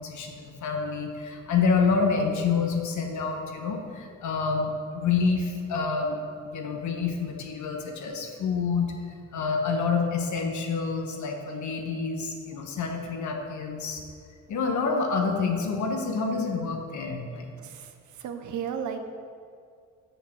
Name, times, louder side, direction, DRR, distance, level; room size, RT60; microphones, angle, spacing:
voice 1, 0.0-8.9 9.3-14.1 14.5-17.5, left 4 dB, 75° left, 3 dB, 1.3 m, -28 dB
voice 2, 17.6-19.0, right 8 dB, 75° right, 7 dB, 0.9 m, -34 dB
6.9 x 6.8 x 6.0 m, 2.3 s
cardioid pair, 90°, 30 cm